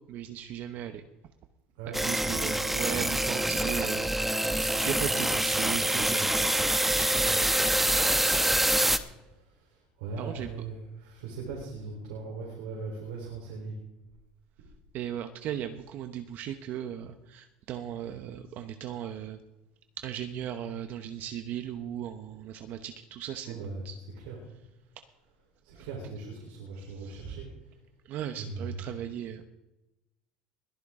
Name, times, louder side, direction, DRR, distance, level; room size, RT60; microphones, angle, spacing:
voice 1, 0.1-1.0 2.0-8.7 10.2-10.5 14.9-19.4 20.0-23.6 23.8-24.0 25.7-25.9 26.9-27.4 28.0-29.4, right 10 dB, 60° right, 8 dB, 1.0 m, -37 dB
sound 1, 1.9-9.0, right 1 dB, 5° right, 1.0 m, -26 dB
voice 2, 9.2-13.7 23.4-23.8 24.2-24.4 25.6-27.7 28.4-28.8, right 4 dB, 85° right, -2 dB, 4.0 m, -39 dB
21.0 x 11.0 x 3.8 m, 0.97 s
supercardioid pair, 85°, 3 cm